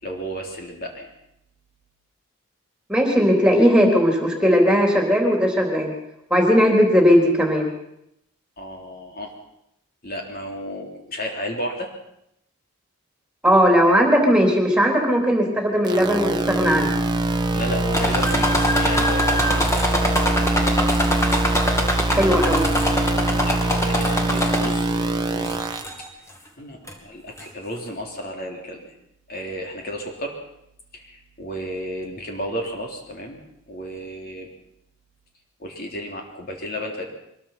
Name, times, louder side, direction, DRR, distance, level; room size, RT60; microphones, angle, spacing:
voice 1, 0.0-1.1 8.6-9.3 10.0-11.9 17.5-21.0 23.3-25.6 26.0-26.2 26.6-28.9 29.3-30.4 30.9-33.4 33.7-34.5 35.6-37.1, equal, 45° left, 1 dB, 3.5 m, -33 dB
voice 2, 2.9-5.9 6.3-7.7 13.4-16.9 22.1-22.6, equal, 5° right, 1 dB, 3.8 m, -18 dB
sound 1, 15.9-25.8, right 2 dB, 20° right, 1.3 m, -23 dB
sound 2, 17.9-25.0 25.5-26.1 26.9-27.0 27.4-27.5, left 1 dB, 15° left, 2.4 m, -24 dB
24.0 x 21.5 x 5.9 m, 0.78 s
head